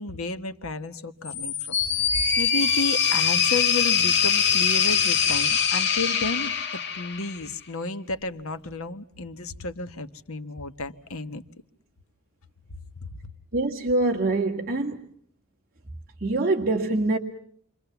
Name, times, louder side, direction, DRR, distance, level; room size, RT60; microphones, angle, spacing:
voice 1, 0.0-1.6 2.0-11.4 13.0-13.1, left 3 dB, 75° left, 1.4 m, -32 dB
sound 1, 1.3-7.5, left 7 dB, 50° left, 1.5 m, -23 dB
voice 2, 13.5-15.1 16.2-17.2, right 2 dB, 40° right, 1.8 m, -24 dB
28.5 x 24.5 x 7.1 m
head